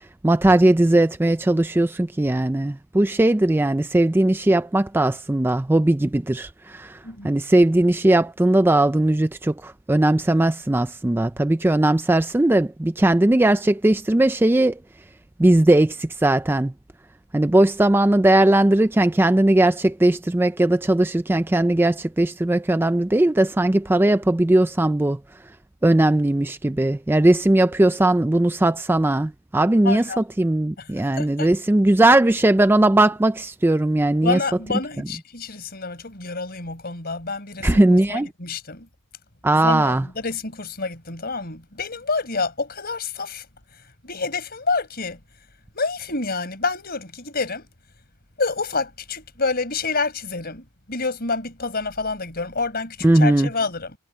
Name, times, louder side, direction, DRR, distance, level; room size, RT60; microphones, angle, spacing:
voice 1, 0.2-7.0 7.2-14.8 15.4-16.7 17.3-25.2 25.8-34.4 37.6-38.3 39.4-40.1 53.0-53.5, right 1 dB, 10° right, 0.3 m, -18 dB
voice 2, 29.8-30.2 30.8-30.9 31.2-31.5 34.2-37.8 38.1-38.9 39.5-43.4 44.0-45.2 45.7-47.7 48.4-54.0, left 4 dB, 45° left, 4.9 m, -28 dB
head